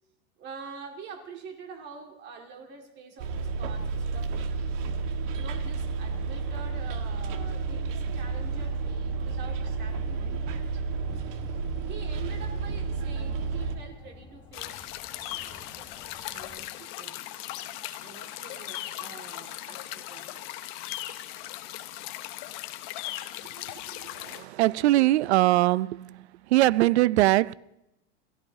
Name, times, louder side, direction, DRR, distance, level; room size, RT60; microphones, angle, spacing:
voice 1, 0.4-4.9 5.3-10.5 11.8-17.3 18.0-20.5, right 5 dB, 30° right, 2.0 m, -46 dB
sound 1, 3.2-16.7, left 4 dB, 15° left, 1.2 m, -54 dB
Bus, 3.2-13.8, right 4 dB, 55° right, 1.6 m, -31 dB
sound 2, 14.5-24.4, left 14 dB, 45° left, 1.0 m, -38 dB
voice 2, 24.4-26.1 26.5-27.5, right 16 dB, 90° right, 0.5 m, -21 dB
29.5 x 13.5 x 2.7 m
supercardioid pair, 155°, 33 cm